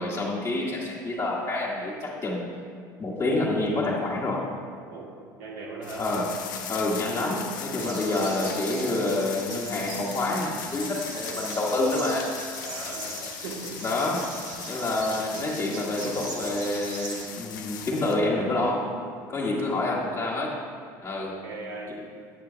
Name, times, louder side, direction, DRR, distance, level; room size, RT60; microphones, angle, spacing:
voice 1, 0.0-2.6 3.0-4.5 6.0-6.3 6.7-12.3 13.8-14.3 14.7-18.8 19.3-20.6 21.0-21.4, left 2 dB, 35° left, -7 dB, 1.8 m, -28 dB
voice 2, 5.4-6.1 12.6-13.7 19.6-19.9 21.1-22.0, right 3 dB, 75° right, -4 dB, 2.2 m, -39 dB
sound 1, 5.8-18.2, left 7 dB, 80° left, 0.8 m, -38 dB
sound 2, 7.8-17.3, right 3 dB, 40° right, 1.5 m, -41 dB
9.1 x 8.4 x 2.9 m, 2.2 s
hypercardioid pair, 75°, 10 cm